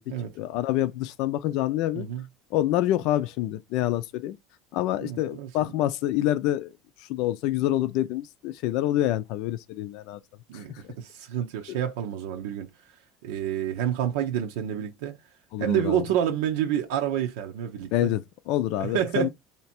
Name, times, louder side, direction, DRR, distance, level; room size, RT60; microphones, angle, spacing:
voice 1, 0.0-2.1 2.5-4.4 4.7-6.7 7.1-10.2 10.8-10.9 15.5-16.0 17.9-19.3, left 14 dB, 65° left, 0.5 m, -27 dB
voice 2, 5.0-5.5 10.5-12.7 13.2-15.2 15.6-18.1 18.8-19.3, right 10 dB, 85° right, 0.6 m, -28 dB
3.4 x 2.9 x 4.3 m
cardioid pair, 135°, 0 cm